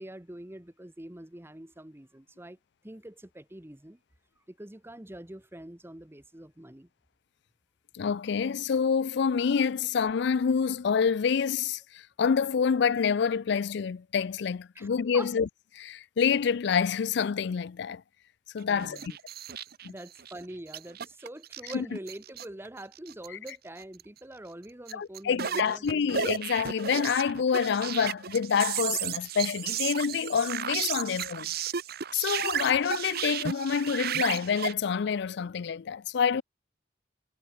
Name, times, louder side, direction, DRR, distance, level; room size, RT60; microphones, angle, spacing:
voice 1, 0.0-2.6 2.8-4.0 4.5-6.9 14.7-14.9 15.1-15.3 18.6-19.2 19.8-26.0 31.1-31.2, right 1 dB, 15° right, 1.1 m, -44 dB
voice 2, 7.9-15.5 15.8-18.0 18.5-19.1 19.8-19.9 21.7-21.8 24.9-31.5 32.1-36.4, left 6 dB, 65° left, 0.4 m, -27 dB
sound 1, 18.6-20.4 20.7-22.7 23.0-23.5 23.8-24.0 24.9-34.7, right 8 dB, 55° right, 0.8 m, -33 dB
head